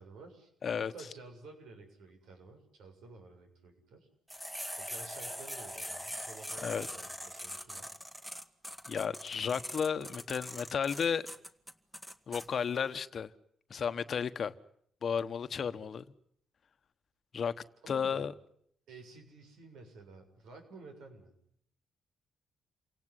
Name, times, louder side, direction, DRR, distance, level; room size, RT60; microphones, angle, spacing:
voice 1, 0.0-0.5 0.8-4.1 4.8-7.9 15.7-15.9 17.8-18.3 18.9-21.3, right 3 dB, 80° right, 7.1 m, -52 dB
voice 2, 0.6-0.9 6.6-6.9 8.9-11.2 12.3-13.3 13.7-14.5 15.0-16.0 17.3-17.5 17.9-18.3, left 7 dB, 50° left, 1.2 m, -33 dB
sound 1, 4.3-12.5, equal, 5° right, 1.8 m, -42 dB
28.5 x 18.0 x 9.8 m
cardioid pair, 90°, 0 cm